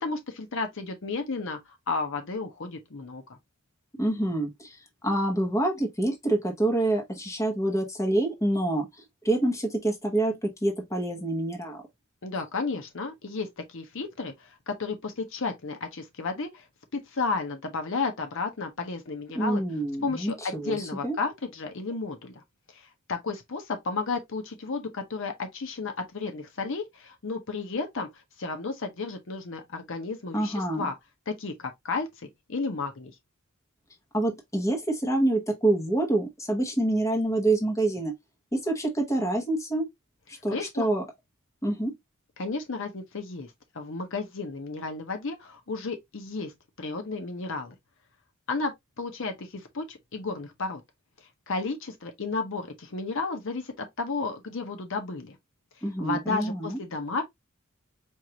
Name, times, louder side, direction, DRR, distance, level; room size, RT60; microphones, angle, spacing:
voice 1, 0.0-3.4 12.2-16.7 16.9-19.6 20.0-22.4 22.7-30.9 31.3-32.1 32.5-33.2 40.3-40.9 42.4-46.5 46.8-47.7 48.5-50.8 51.2-55.4 56.0-57.2, left 4 dB, 60° left, 0.8 m, -33 dB
voice 2, 4.0-4.8 5.0-8.9 9.2-11.8 19.3-21.1 30.3-30.9 34.1-38.1 38.5-39.9 40.3-41.0 41.6-41.9 55.8-56.8, right 1 dB, 15° left, 1.0 m, -26 dB
4.6 x 2.5 x 2.8 m
head